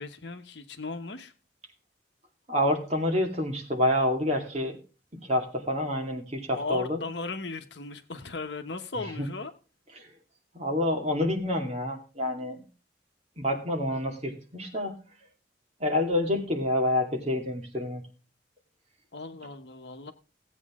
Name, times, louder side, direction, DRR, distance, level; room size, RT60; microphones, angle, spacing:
voice 1, 0.0-1.3 6.5-9.5 19.1-20.1, left 3 dB, 65° left, 8 dB, 1.2 m, -37 dB
voice 2, 2.5-4.8 5.2-7.0 9.2-9.3 10.0-10.1 10.5-12.6 13.4-15.0 15.8-18.0, left 1 dB, 35° right, 2 dB, 2.3 m, -28 dB
16.5 x 8.4 x 3.7 m, 0.34 s
head